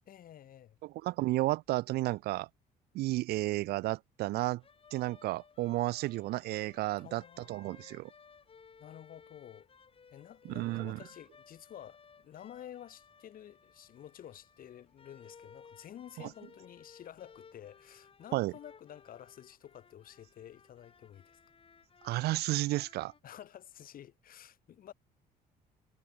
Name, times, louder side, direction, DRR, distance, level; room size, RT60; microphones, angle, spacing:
voice 1, 0.1-0.8 7.0-7.7 8.8-9.7 10.1-21.4 23.2-24.9, left 10 dB, 55° left, 7.6 m, -51 dB
voice 2, 0.8-2.5 2.9-4.6 4.9-7.2 7.5-8.1 10.6-11.0 18.3-18.5 22.0-23.1, right 18 dB, 70° right, 0.4 m, -32 dB
sound 1, 4.6-23.2, left 6 dB, 35° left, 4.8 m, -59 dB
cardioid pair, 110°, 17 cm